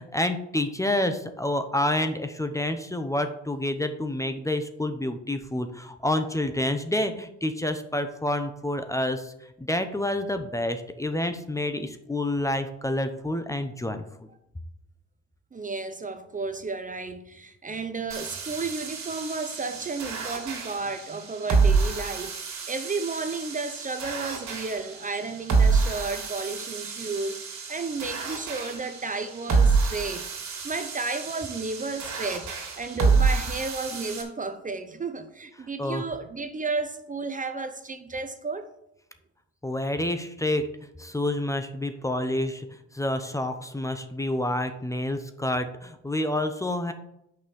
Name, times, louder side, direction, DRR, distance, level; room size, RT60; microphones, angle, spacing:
voice 1, 0.0-9.3 9.6-14.0 35.8-36.0 39.6-40.6 41.0-42.7 42.9-46.9, left 1 dB, 10° left, 0.8 m, -28 dB
voice 2, 15.5-30.3 30.6-32.5 32.8-38.7, right 3 dB, 25° right, 0.7 m, -33 dB
sound 1, 18.1-34.2, right 4 dB, 65° right, 2.5 m, -28 dB
6.4 x 5.5 x 7.0 m
cardioid pair, 90°, 30 cm